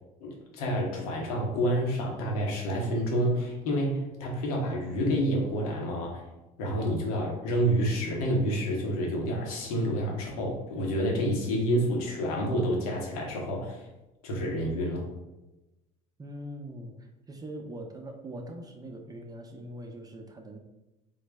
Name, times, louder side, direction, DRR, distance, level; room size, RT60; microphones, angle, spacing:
voice 1, 0.2-6.3 6.6-13.9 14.2-15.1, equal, 85° left, -1 dB, 0.8 m, -28 dB
voice 2, 16.2-20.6, right 1 dB, 20° right, 3 dB, 0.5 m, -42 dB
3.8 x 2.0 x 3.3 m, 1.0 s
supercardioid pair, 80°, 18 cm